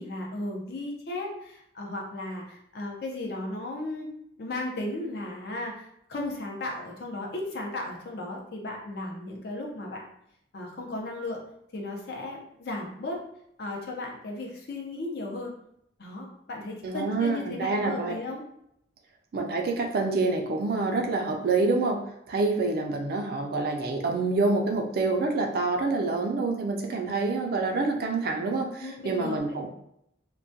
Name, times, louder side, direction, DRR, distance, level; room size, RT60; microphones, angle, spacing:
voice 1, 0.0-4.1 4.4-10.0 10.5-11.4 11.7-13.2 13.6-15.5 16.0-18.4 28.7-29.6, left 2 dB, 60° left, -1 dB, 0.5 m, -35 dB
voice 2, 16.8-18.2 19.3-29.7, right 3 dB, 55° right, 3 dB, 0.4 m, -27 dB
2.2 x 2.1 x 2.6 m, 0.75 s
head